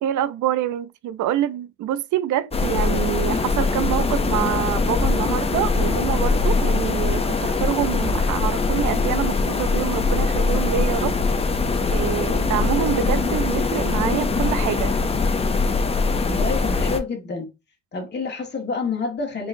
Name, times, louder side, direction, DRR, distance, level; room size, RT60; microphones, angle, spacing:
voice 1, 0.0-11.2 11.9-14.9, right 11 dB, 75° right, 0.5 m, -26 dB
sound 1, 2.5-17.0, left 4 dB, 20° left, 0.5 m, -22 dB
voice 2, 16.2-17.6 17.9-19.5, left 4 dB, 35° left, 1.5 m, -28 dB
3.9 x 3.8 x 2.6 m
cardioid pair, 90°, 30 cm